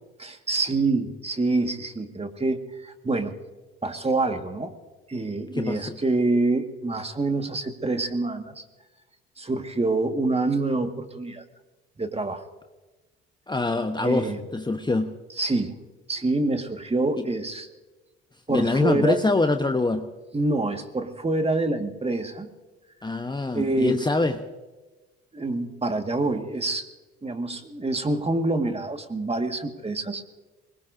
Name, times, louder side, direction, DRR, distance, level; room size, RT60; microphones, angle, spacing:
voice 1, 0.2-3.3 3.8-4.7 5.1-8.6 9.4-11.4 12.0-12.4 14.0-14.4 15.4-15.7 16.1-17.7 18.5-19.2 20.3-22.5 23.5-24.0 25.3-26.9 27.2-30.2, right 2 dB, 20° right, 6 dB, 1.9 m, -26 dB
voice 2, 5.5-6.0 13.5-15.1 18.5-20.0 23.0-24.4, left 3 dB, 15° left, 7 dB, 1.1 m, -24 dB
24.0 x 20.5 x 2.8 m, 1.2 s
hypercardioid pair, 55°, 30 cm